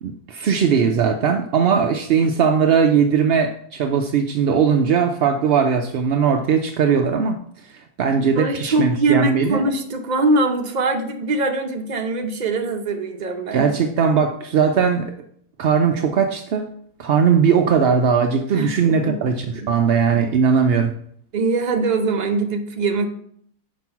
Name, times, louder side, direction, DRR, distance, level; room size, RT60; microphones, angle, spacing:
voice 1, 0.0-7.4 8.0-9.6 13.5-15.1 15.6-16.7 17.0-20.9, right 6 dB, 70° right, 5 dB, 0.5 m, -19 dB
voice 2, 8.4-13.7 18.5-19.2 19.6-19.7 21.3-23.1, right 3 dB, 40° right, 4 dB, 0.7 m, -22 dB
6.0 x 5.2 x 5.7 m, 0.65 s
omnidirectional pair, 1.6 m